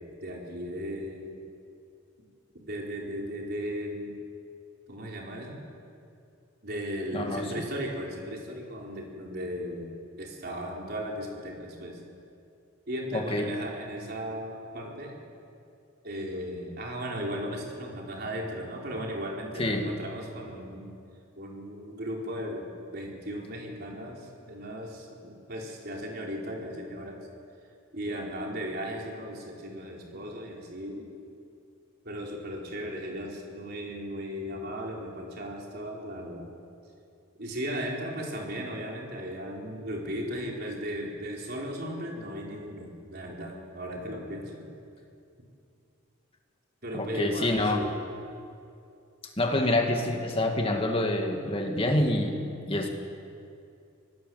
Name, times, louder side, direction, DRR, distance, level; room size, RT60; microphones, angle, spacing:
voice 1, 0.2-1.3 2.5-4.1 4.9-5.6 6.6-12.0 12.9-15.2 16.0-20.9 21.4-27.3 27.9-31.1 32.0-36.5 37.4-44.7 46.8-48.0, equal, 50° right, -1 dB, 4.3 m, -36 dB
voice 2, 7.1-7.5 13.1-13.5 19.6-19.9 46.9-47.8 49.4-52.4 52.7-52.9, left 1 dB, 25° left, 3 dB, 2.4 m, -27 dB
25.5 x 19.0 x 7.9 m, 2.5 s
head